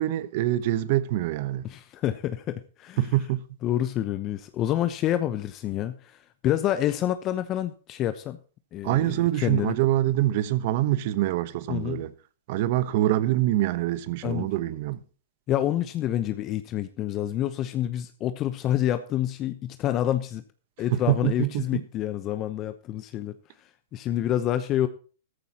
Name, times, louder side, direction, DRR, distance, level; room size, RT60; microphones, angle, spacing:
voice 1, 0.0-1.6 3.0-3.4 8.8-12.1 12.5-15.0 20.9-21.8, right 14 dB, 50° right, 1.1 m, -25 dB
voice 2, 1.6-3.1 3.6-8.4 8.7-9.7 11.7-12.0 14.2-14.5 15.5-20.4 20.8-24.9, left 12 dB, 30° left, 0.9 m, -28 dB
14.0 x 13.5 x 3.0 m
hypercardioid pair, 135°, 0 cm